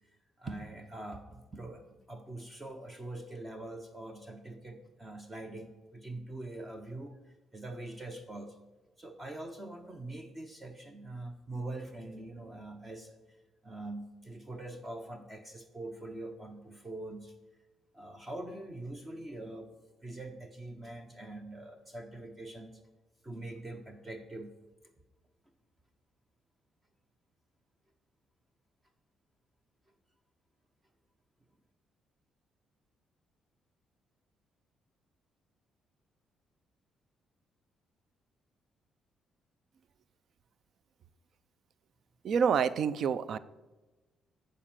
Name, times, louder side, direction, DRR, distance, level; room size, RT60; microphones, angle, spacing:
voice 1, 0.4-7.2 7.5-8.6 9.0-13.2 13.6-17.3 17.9-19.7 20.0-22.8 23.2-24.5, right 2 dB, 15° right, 6 dB, 0.6 m, -43 dB
voice 2, 42.2-43.4, right 7 dB, 50° right, 17 dB, 0.4 m, -27 dB
9.7 x 5.1 x 7.4 m, 1.2 s
cardioid pair, 155°, 0 cm